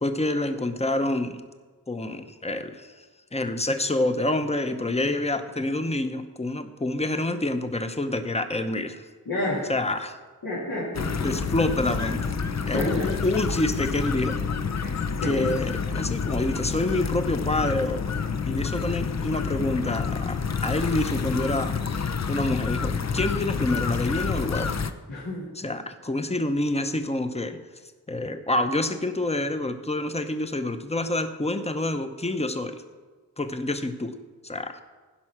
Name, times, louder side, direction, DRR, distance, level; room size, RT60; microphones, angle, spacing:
voice 1, 0.0-1.5 1.9-3.1 3.3-9.1 9.7-10.2 11.2-12.3 12.7-14.4 15.2-18.0 18.5-21.8 22.3-24.7 25.6-27.6 28.1-32.8 33.4-34.2 34.4-34.8, left 2 dB, 20° left, 8 dB, 0.8 m, -27 dB
voice 2, 9.3-9.7 10.4-11.3 12.7-13.1 14.8-15.4 25.1-25.5, left 1 dB, 85° left, -9 dB, 2.9 m, -30 dB
sound 1, 10.9-24.9, left 5 dB, 50° left, 0.6 m, -28 dB
15.5 x 5.5 x 6.0 m, 1.4 s
wide cardioid pair, 75°, 35 cm